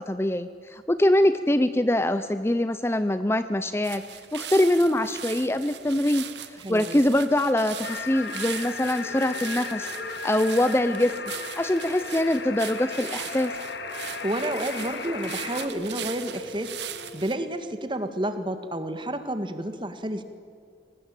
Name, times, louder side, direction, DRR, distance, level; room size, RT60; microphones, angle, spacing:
voice 1, 0.0-4.0 4.3-9.9 10.2-11.1 11.6-13.5, left 1 dB, 15° left, 11 dB, 0.6 m, -23 dB
sound 1, 3.8-17.3, right 10 dB, 80° right, 1.6 m, -39 dB
voice 2, 6.6-7.0 14.2-16.8 17.1-20.2, right 1 dB, 25° right, 9 dB, 1.8 m, -30 dB
sound 2, 7.8-15.7, left 5 dB, 85° left, 2.5 m, -36 dB
sound 3, 9.0-17.4, left 1 dB, 65° left, 3.1 m, -43 dB
24.0 x 19.0 x 8.9 m, 2.3 s
head